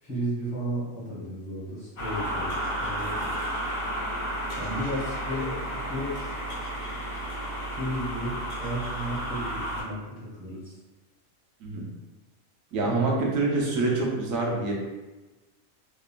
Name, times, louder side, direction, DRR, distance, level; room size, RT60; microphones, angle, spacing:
voice 1, 0.0-3.5 4.6-6.3 7.7-10.8 12.8-12.9, right 1 dB, 30° left, -9 dB, 1.1 m, -34 dB
sound 1, 2.0-9.8, right 1 dB, 70° left, 1.1 m, -32 dB
voice 2, 12.7-14.7, right 3 dB, 90° right, -2 dB, 1.0 m, -26 dB
2.9 x 2.4 x 2.2 m, 1.1 s
omnidirectional pair, 1.3 m